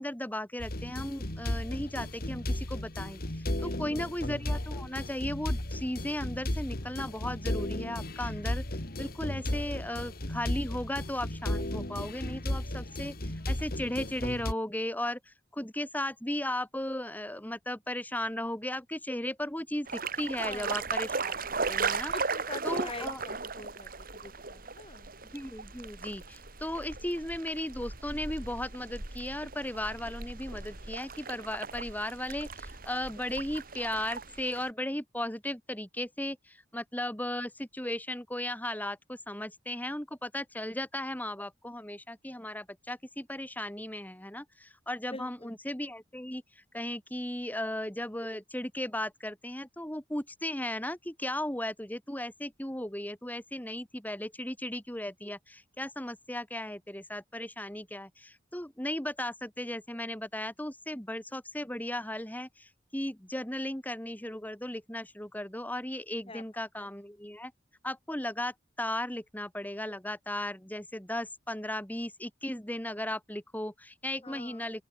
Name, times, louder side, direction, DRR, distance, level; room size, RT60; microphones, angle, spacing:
voice 1, 0.0-21.4 21.7-22.1 22.6-23.2 25.3-67.5 67.8-74.8, left 1 dB, 10° left, 3.7 m, -36 dB
sound 1, 0.6-14.5, left 1 dB, 55° left, 3.2 m, -34 dB
voice 2, 3.6-4.0 20.4-20.8 22.1-25.1 45.1-45.5 66.3-66.4 74.2-74.7, left 2 dB, 30° left, 6.6 m, -45 dB
sound 2, 19.9-34.7, right 4 dB, 55° right, 5.1 m, -37 dB
open air
head